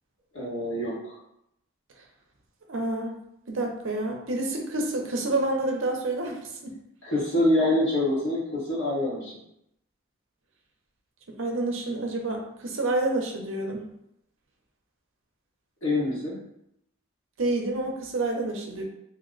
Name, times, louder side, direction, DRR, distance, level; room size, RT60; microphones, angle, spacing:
voice 1, 0.3-1.1 7.0-9.3 15.8-16.4, left 1 dB, 60° left, -7 dB, 1.4 m, -25 dB
voice 2, 2.7-3.1 3.5-6.7 11.4-13.8 17.4-18.8, right 2 dB, 60° right, 1 dB, 0.6 m, -28 dB
2.9 x 2.1 x 3.8 m, 0.80 s
head